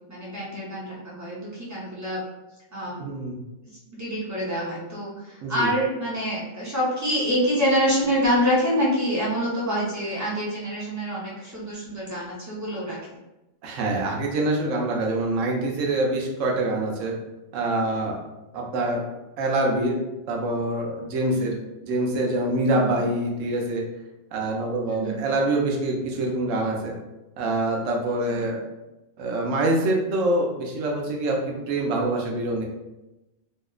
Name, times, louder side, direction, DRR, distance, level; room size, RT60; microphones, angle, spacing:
voice 1, 0.1-2.2 2.7-2.9 4.0-13.0 21.3-21.5 22.7-23.0 24.8-25.2 28.3-28.4, equal, 30° right, -7 dB, 0.3 m, -26 dB
voice 2, 3.0-3.4 5.4-5.7 13.6-17.1 17.5-18.2 18.5-19.1 19.4-20.0 20.3-21.6 21.8-23.8 24.3-26.9 27.4-28.6 29.2-32.6, right 2 dB, 80° right, 0 dB, 0.9 m, -25 dB
2.7 x 2.0 x 2.3 m, 1.0 s
omnidirectional pair, 1.3 m